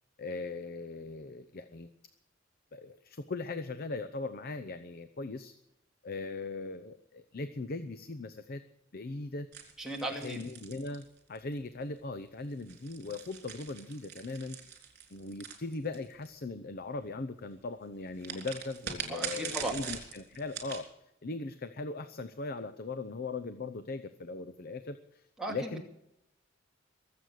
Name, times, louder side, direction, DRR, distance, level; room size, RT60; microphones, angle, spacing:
voice 1, 0.2-1.9 2.7-5.5 6.0-8.6 8.9-9.5 10.2-14.6 15.1-20.9 21.2-25.2 25.5-25.8, left 3 dB, 50° left, 11 dB, 0.7 m, -39 dB
sound 1, 9.5-11.5 12.5-16.3 18.2-20.9, right 7 dB, 55° right, 3.7 m, -42 dB
voice 2, 9.8-10.4 19.1-19.7 25.4-25.8, right 1 dB, 5° right, -1 dB, 2.6 m, -36 dB
22.5 x 8.0 x 6.5 m, 0.82 s
head